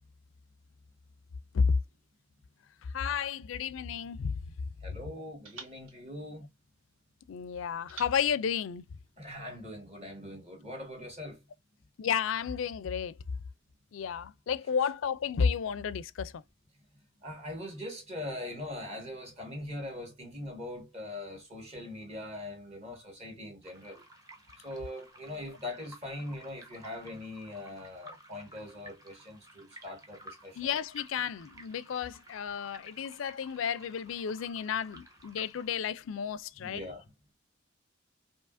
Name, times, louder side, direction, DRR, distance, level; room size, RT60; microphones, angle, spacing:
voice 1, 2.9-4.3 7.3-8.8 12.0-13.1 13.9-16.4 30.6-36.8, left 7 dB, 70° left, 0.4 m, -32 dB
sound 1, 3.6-4.9 5.4-7.1 7.9-9.5, right 4 dB, 75° right, 1.6 m, -53 dB
voice 2, 4.8-6.5 9.2-11.4 17.2-24.0 24.6-30.7 36.6-37.0, left 1 dB, 35° right, 1.6 m, -41 dB
sound 2, 23.6-35.7, right 1 dB, 20° right, 1.0 m, -54 dB
4.8 x 2.8 x 2.5 m
head